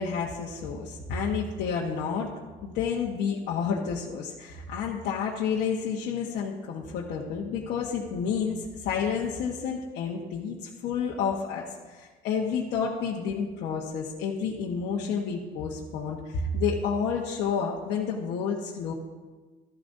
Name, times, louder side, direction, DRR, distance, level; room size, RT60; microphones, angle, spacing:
voice 1, 0.0-2.3 2.6-18.9, left 6 dB, 85° left, -3 dB, 1.3 m, -30 dB
15.5 x 13.0 x 2.7 m, 1.3 s
cardioid pair, 110°, 17 cm